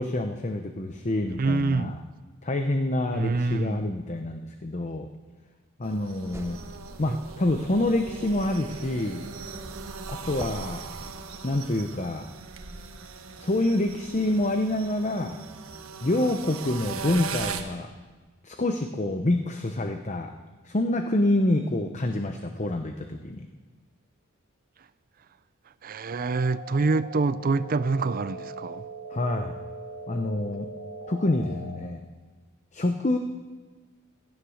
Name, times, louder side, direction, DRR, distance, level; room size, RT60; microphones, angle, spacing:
voice 1, 0.0-2.0 2.4-5.1 5.8-6.6 7.0-9.2 10.1-10.8 11.4-12.2 13.4-15.4 16.0-17.9 18.4-20.3 20.6-23.5 29.1-29.6 30.1-30.7 31.1-32.0 32.7-33.2, left 1 dB, 35° left, 0.8 m, -27 dB
voice 2, 1.4-2.0 3.1-3.8 7.1-7.2 25.8-28.8, right 3 dB, 40° right, 0.5 m, -26 dB
sound 1, 5.8-17.6, right 6 dB, 75° right, 1.3 m, -40 dB
sound 2, 6.3-11.4, right 1 dB, 10° right, 0.9 m, -44 dB
sound 3, 26.1-31.8, right 1 dB, 90° left, 2.6 m, -41 dB
17.0 x 13.0 x 6.4 m
head